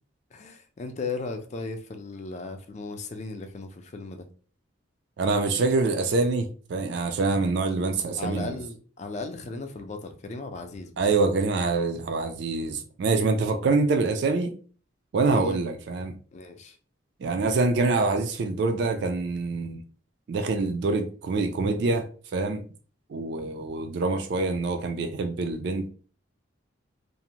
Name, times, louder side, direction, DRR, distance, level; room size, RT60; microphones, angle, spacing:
voice 1, 0.3-4.3 8.2-11.0 15.2-15.6 16.3-16.8, left 3 dB, 35° left, 0.3 m, -36 dB
voice 2, 5.2-8.6 11.0-14.5 15.1-16.1 17.2-19.8 20.3-22.6 23.1-25.9, right 3 dB, 55° right, 0.3 m, -25 dB
2.6 x 2.0 x 2.8 m
head